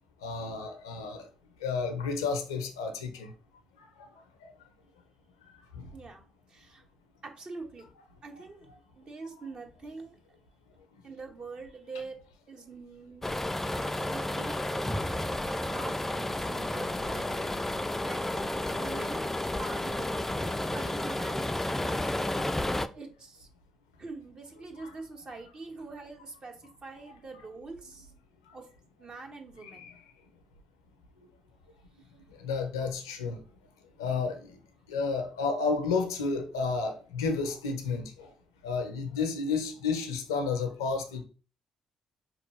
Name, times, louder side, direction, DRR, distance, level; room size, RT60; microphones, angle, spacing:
voice 1, 0.2-1.3 1.6-3.3 3.8-4.1 4.4-4.5 5.7-5.9 24.8-24.9 29.7-29.9 32.4-33.4 34.0-34.6 34.9-38.3 38.6-41.2, left 4 dB, 90° left, 0.5 m, -31 dB
voice 2, 5.9-6.8 7.2-7.9 8.2-8.7 8.9-10.2 11.0-13.4 13.8-14.7 15.6-17.7 18.0-18.2 18.7-19.2 19.5-20.2 20.7-22.4 22.9-23.5 24.0-28.1 28.5-28.7 29.0-29.9 32.0-32.1, right 3 dB, 45° right, 1.1 m, -44 dB
sound 1, 13.2-22.9, left 1 dB, 15° left, 0.4 m, -31 dB
4.1 x 3.1 x 3.1 m
hypercardioid pair, 45°, 2 cm